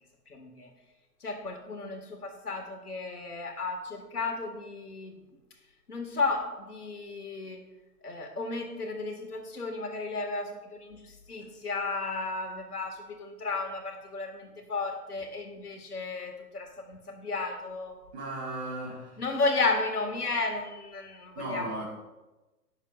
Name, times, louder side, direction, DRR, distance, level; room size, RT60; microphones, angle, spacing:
voice 1, 0.3-0.7 1.2-5.2 5.9-7.6 8.0-18.0 19.2-21.8, left 3 dB, 70° left, 4 dB, 1.9 m, -33 dB
voice 2, 18.1-19.2 21.3-21.8, right 2 dB, 5° right, -4 dB, 0.5 m, -36 dB
18.0 x 6.7 x 2.4 m, 1.1 s
figure-of-eight pair, 125°, 47 cm